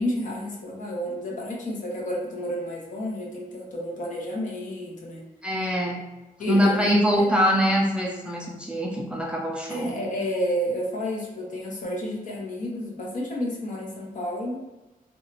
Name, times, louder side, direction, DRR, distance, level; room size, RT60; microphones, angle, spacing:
voice 1, 0.0-5.2 6.4-7.3 9.7-14.6, left 1 dB, 55° left, -3 dB, 0.8 m, -31 dB
voice 2, 5.4-6.0 6.5-9.9, equal, 5° right, -2 dB, 0.3 m, -23 dB
2.9 x 2.3 x 2.9 m, 1.1 s
wide cardioid pair, 155°, 15 cm